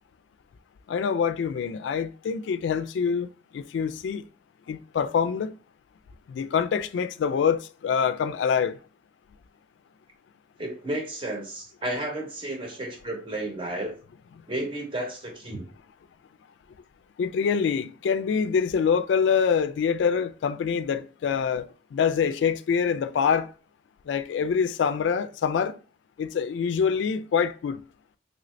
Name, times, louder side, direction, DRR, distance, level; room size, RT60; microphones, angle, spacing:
voice 1, 0.9-3.3 3.5-4.2 4.7-5.6 6.3-8.8 17.2-23.5 24.1-25.8 26.2-27.8, left 6 dB, 90° left, 0.3 m, -25 dB
voice 2, 10.6-13.9 14.5-15.6, right 1 dB, 30° right, 0.8 m, -32 dB
3.2 x 2.5 x 3.1 m
head